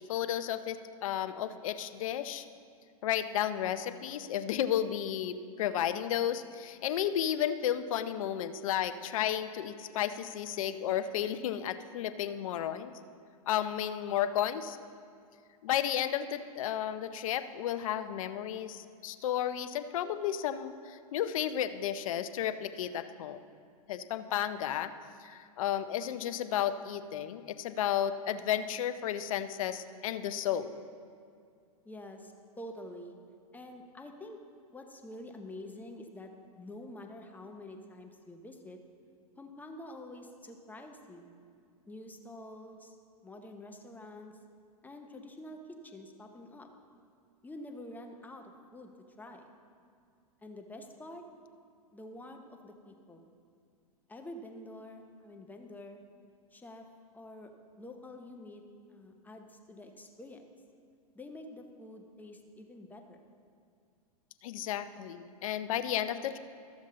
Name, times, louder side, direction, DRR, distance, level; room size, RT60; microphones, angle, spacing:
voice 1, 0.1-2.4 3.0-13.0 13.5-14.8 15.6-23.4 23.9-24.9 25.2-30.8 64.4-66.4, left 10 dB, 65° left, 11 dB, 0.6 m, -33 dB
voice 2, 31.8-33.2 33.5-34.4 34.7-38.8 39.4-41.3 41.9-43.0 43.2-44.3 44.8-46.7 47.4-48.9 49.2-49.5 50.4-51.2 51.9-53.3 54.1-56.0 56.5-56.9 57.1-57.5 57.8-58.6 58.9-60.4 61.1-63.2, left 1 dB, 10° left, 3 dB, 0.8 m, -47 dB
13.5 x 7.2 x 3.8 m, 2.3 s
hypercardioid pair, 110°, 19 cm